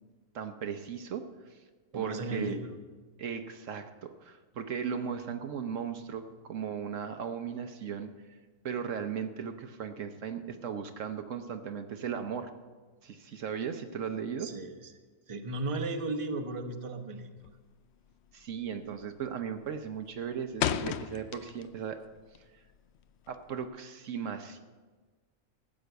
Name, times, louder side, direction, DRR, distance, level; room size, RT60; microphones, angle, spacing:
voice 1, 0.3-1.6 1.9-2.6 3.2-8.4 8.6-12.5 13.0-14.5 18.3-22.0 23.3-24.6, right 7 dB, 65° right, 7 dB, 1.1 m, -37 dB
voice 2, 1.9-2.8 14.4-14.9 15.3-17.3, right 2 dB, 25° right, 5 dB, 0.9 m, -35 dB
sound 1, 17.4-17.8 18.1-18.4 18.8-19.2 19.5-21.9 22.2-23.6, left 10 dB, 65° left, 0.7 m, -34 dB
14.0 x 7.6 x 8.0 m, 1.4 s
omnidirectional pair, 1.5 m